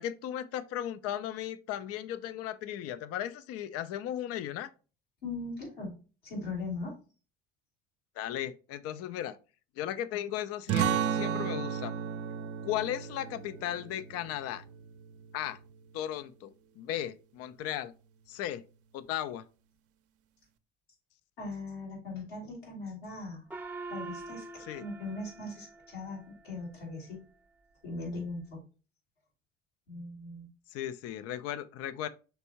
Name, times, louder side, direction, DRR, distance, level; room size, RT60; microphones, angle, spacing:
voice 1, 0.0-4.7 8.2-9.4 9.8-11.9 12.6-14.6 15.3-15.6 15.9-17.9 18.3-18.6 18.9-19.4 24.7-24.9 30.7-32.1, left 11 dB, 50° left, 0.5 m, -36 dB
voice 2, 5.2-5.9 6.2-7.0 21.4-23.4 23.9-27.2 27.8-28.6 29.9-30.5, left 2 dB, 80° left, 2.4 m, -39 dB
sound 1, 10.7-15.9, right 8 dB, 50° right, 0.5 m, -34 dB
Gong, 23.5-26.4, right 3 dB, 5° right, 0.6 m, -44 dB
5.4 x 3.4 x 2.8 m
hypercardioid pair, 60°, 30 cm